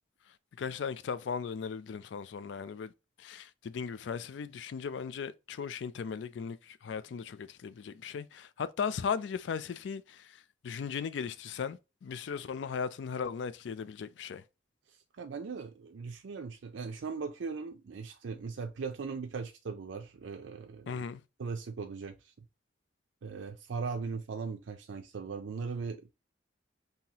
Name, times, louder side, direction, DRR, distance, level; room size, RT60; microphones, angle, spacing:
voice 1, 0.6-2.9 3.2-10.2 10.6-14.4 20.9-21.2, left 6 dB, 75° left, 0.4 m, -37 dB
voice 2, 15.2-21.0 21.4-22.2 23.2-26.0, right 5 dB, 85° right, 0.5 m, -39 dB
5.5 x 2.8 x 2.8 m
head